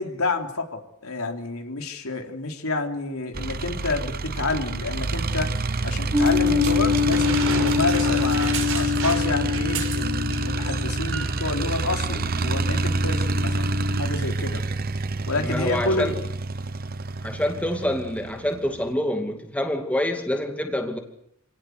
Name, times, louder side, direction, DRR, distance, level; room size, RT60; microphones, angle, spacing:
voice 1, 0.0-5.5 5.8-14.6 15.3-16.1, left 3 dB, 80° left, 4 dB, 3.7 m, -29 dB
sound 1, 3.3-18.9, right 3 dB, 45° right, 0.9 m, -28 dB
sound 2, 6.1-14.0, left 6 dB, 10° right, 1.9 m, -26 dB
sound 3, 6.2-10.4 10.7-10.8 11.1-11.6 12.3-12.4, right 5 dB, 65° right, 5.6 m, -32 dB
voice 2, 15.4-16.2 17.2-21.0, left 1 dB, 5° left, 4 dB, 2.5 m, -26 dB
28.0 x 18.0 x 9.6 m, 0.77 s
head